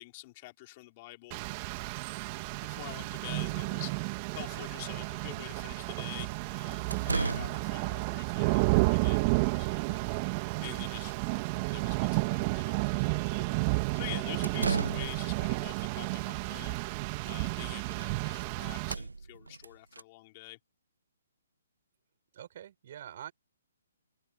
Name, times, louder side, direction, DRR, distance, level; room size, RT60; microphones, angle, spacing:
voice 1, 0.0-1.4 2.6-16.8 17.2-20.6, left 21 dB, 35° left, 4.1 m, -47 dB
Rain, 1.3-18.9, right 26 dB, 30° right, 2.2 m, -31 dB
sound 1, 6.3-6.4 6.9-7.7 14.2-15.4 17.2-17.3 17.5-18.1 18.4-18.5 18.8-20.0, right 3 dB, 85° right, 0.7 m, -35 dB
voice 2, 22.3-23.3, right 10 dB, 50° right, 6.1 m, -45 dB
figure-of-eight pair, 135°, 0 cm